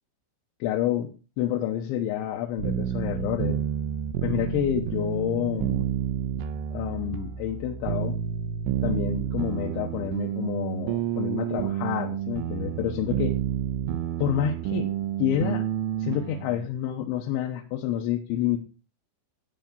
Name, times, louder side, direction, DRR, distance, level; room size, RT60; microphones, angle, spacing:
voice 1, 0.6-1.1 1.4-3.6 4.2-5.9 6.7-8.2 8.8-13.3 14.2-14.9 15.2-15.6 16.0-18.6, left 10 dB, 75° left, 2 dB, 3.2 m, -28 dB
sound 1, 2.6-16.7, right 10 dB, 80° right, 2.7 m, -30 dB
15.0 x 8.5 x 3.9 m, 0.33 s
omnidirectional pair, 5.8 m